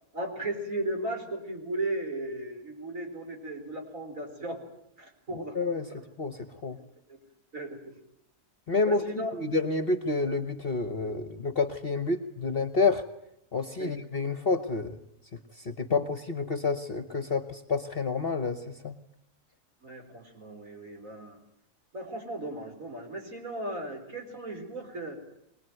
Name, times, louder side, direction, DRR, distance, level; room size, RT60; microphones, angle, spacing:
voice 1, 0.1-4.6 5.0-5.6 5.9-6.0 7.1-7.2 7.5-7.9 8.8-9.3 13.8-14.0 19.8-21.4 21.9-25.2, right 1 dB, 55° right, 2 dB, 4.8 m, -36 dB
voice 2, 5.5-5.9 6.2-6.4 6.6-6.8 8.7-9.0 9.4-13.0 13.5-15.0 15.6-18.9, left 3 dB, 40° left, 11 dB, 1.3 m, -29 dB
23.5 x 20.0 x 9.3 m, 0.78 s
omnidirectional pair, 1.7 m